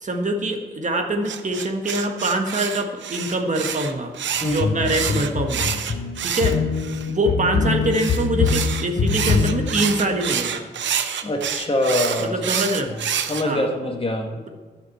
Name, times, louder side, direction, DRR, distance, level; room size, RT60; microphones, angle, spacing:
voice 1, 0.0-4.1 4.4-5.7 6.2-6.6 7.1-10.7 12.2-12.9 13.4-13.7 14.3-14.5, right 1 dB, 40° right, 3 dB, 1.5 m, -24 dB
sound 1, 1.3-7.1 7.9-13.4, right 8 dB, 90° right, 0.7 m, -28 dB
sound 2, 4.4-9.9, left 5 dB, 65° left, 0.9 m, -24 dB
voice 2, 11.2-12.3 13.3-14.3, left 1 dB, 30° left, 3 dB, 1.6 m, -23 dB
11.5 x 6.0 x 8.5 m, 1.4 s
cardioid pair, 85°, 18 cm